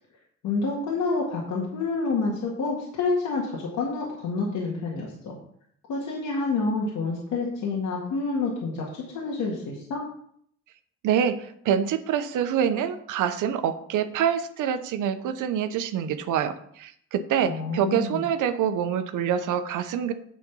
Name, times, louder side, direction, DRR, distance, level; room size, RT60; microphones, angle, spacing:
voice 1, 0.4-5.4 5.9-10.0 17.5-18.2, left 3 dB, 80° left, -3 dB, 2.0 m, -28 dB
voice 2, 11.0-20.1, right 8 dB, 85° right, 10 dB, 0.9 m, -26 dB
8.7 x 4.2 x 7.0 m, 0.66 s
cardioid pair, 90°, 30 cm